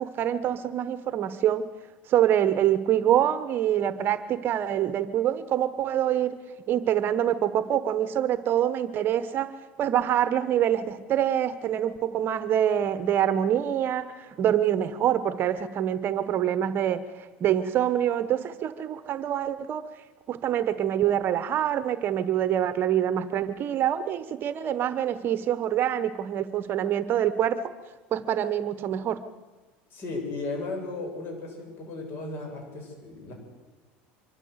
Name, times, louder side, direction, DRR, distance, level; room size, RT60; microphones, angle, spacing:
voice 1, 0.0-1.6 2.1-6.4 6.7-19.9 20.3-27.6 28.1-29.2, right 10 dB, 40° right, 13 dB, 1.0 m, -25 dB
voice 2, 29.9-33.3, left 3 dB, 45° left, 1 dB, 7.6 m, -35 dB
24.5 x 13.5 x 8.0 m, 1.2 s
supercardioid pair, 130°, 5 cm